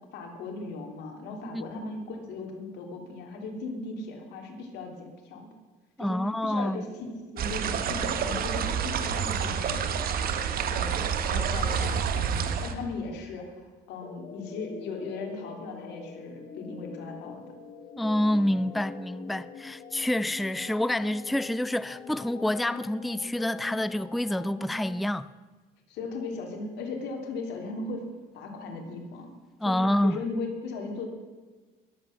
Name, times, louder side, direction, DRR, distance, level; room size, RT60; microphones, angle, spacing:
voice 1, 0.1-5.5 6.0-9.9 10.6-17.4 25.9-28.1 28.3-29.3 29.6-31.1, left 3 dB, 80° left, 3.0 m, -37 dB
voice 2, 6.0-6.8 18.0-25.3 29.6-30.2, left 1 dB, ahead, 0.3 m, -28 dB
sound 1, 7.4-12.7, right 7 dB, 60° right, 1.4 m, -28 dB
sound 2, 14.0-25.0, left 5 dB, 40° left, 1.8 m, -43 dB
21.5 x 8.6 x 6.5 m
cardioid pair, 110°, 17 cm